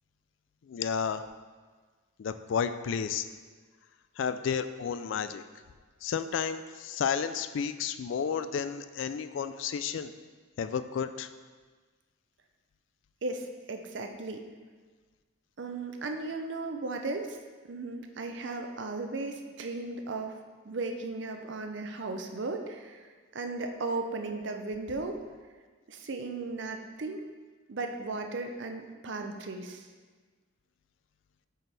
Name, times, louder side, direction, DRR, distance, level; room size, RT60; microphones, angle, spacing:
voice 1, 0.7-1.2 2.2-3.2 4.2-5.4 6.0-10.1 10.6-11.3, left 7 dB, 65° left, 11 dB, 0.3 m, -32 dB
voice 2, 13.2-14.5 15.6-17.4 17.7-20.4 20.6-23.1 23.3-25.2 25.9-27.2 27.7-29.9, right 3 dB, 60° right, 5 dB, 0.5 m, -36 dB
8.1 x 4.3 x 3.3 m, 1.4 s
head